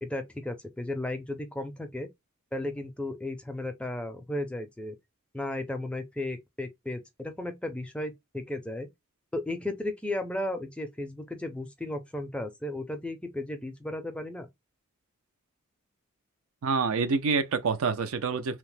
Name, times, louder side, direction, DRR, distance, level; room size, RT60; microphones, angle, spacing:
voice 1, 0.0-2.1 2.5-5.0 5.3-8.9 9.3-14.5, left 1 dB, 5° left, 0.4 m, -34 dB
voice 2, 16.6-18.6, right 4 dB, 75° right, 0.5 m, -27 dB
2.9 x 2.0 x 3.1 m
head